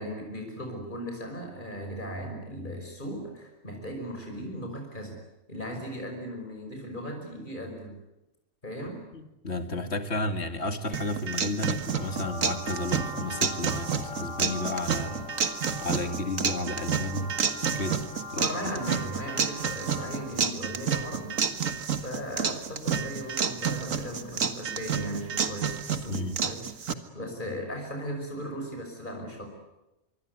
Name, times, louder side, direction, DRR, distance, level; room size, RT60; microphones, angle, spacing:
voice 1, 0.0-5.1 5.5-7.9 8.6-9.0 14.9-15.2 18.4-21.4 22.0-29.5, equal, 40° left, 2 dB, 5.9 m, -37 dB
voice 2, 9.1-15.2 15.8-17.3 17.7-18.0 18.3-18.7 26.1-26.4, left 2 dB, 55° left, 8 dB, 2.6 m, -32 dB
sound 1, 10.9-26.9, right 6 dB, 85° right, 1.9 m, -30 dB
sound 2, 11.7-20.6, left 1 dB, 85° left, 3.6 m, -41 dB
26.0 x 24.0 x 9.7 m, 0.96 s
omnidirectional pair, 1.3 m